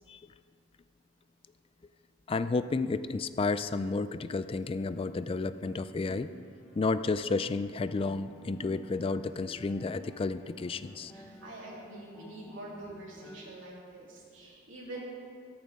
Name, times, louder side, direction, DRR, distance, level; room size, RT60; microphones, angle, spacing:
voice 1, 2.3-6.3 6.8-11.1, left 3 dB, 30° left, 13 dB, 0.3 m, -31 dB
sound 1, 4.9-11.3, left 1 dB, 80° left, 2.8 m, -55 dB
sound 2, 7.9-13.5, left 1 dB, 10° left, 0.8 m, -54 dB
voice 2, 11.1-15.0, right 1 dB, 80° right, -4 dB, 3.3 m, -45 dB
14.0 x 14.0 x 3.6 m, 2.2 s
head